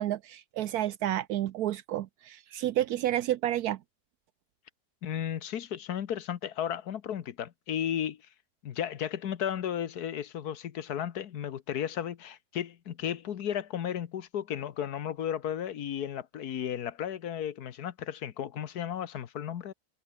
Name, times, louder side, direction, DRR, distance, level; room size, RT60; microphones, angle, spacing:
voice 1, 0.0-3.8, right 13 dB, 75° right, 1.1 m, -30 dB
voice 2, 5.0-8.2 8.6-19.7, left 9 dB, 80° left, 1.6 m, -34 dB
omnidirectional pair, 1.6 m